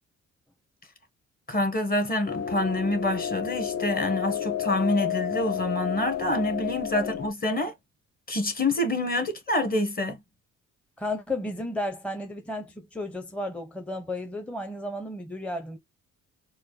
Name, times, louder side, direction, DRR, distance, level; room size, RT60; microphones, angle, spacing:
voice 1, 1.5-7.7 8.3-10.2, left 1 dB, 30° left, 1.3 m, -27 dB
sound 1, 2.3-7.3, left 9 dB, 55° left, 0.7 m, -31 dB
voice 2, 11.0-15.8, left 1 dB, 5° left, 0.7 m, -33 dB
4.4 x 2.2 x 3.2 m
cardioid pair, 90°, 30 cm